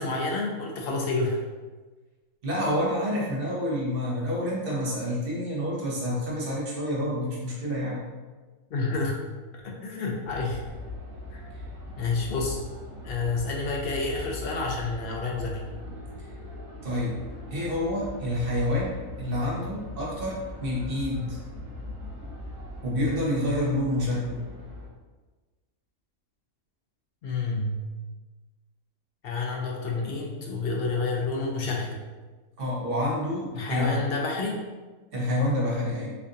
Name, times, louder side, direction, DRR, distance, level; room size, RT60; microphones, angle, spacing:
voice 1, 0.0-1.4 8.7-9.2 9.5-10.6 11.3-11.4 12.0-12.6 13.0-15.6 27.2-27.8 29.2-32.0 33.5-34.6, left 3 dB, 65° left, -1 dB, 0.6 m, -29 dB
voice 2, 2.4-8.0 16.8-17.2 17.5-21.4 22.8-24.4 32.6-34.0 35.1-36.2, left 1 dB, 45° right, -4 dB, 1.0 m, -28 dB
sound 1, 10.2-24.9, left 1 dB, 90° right, 1.2 m, -40 dB
4.4 x 2.5 x 2.5 m, 1.3 s
omnidirectional pair, 1.5 m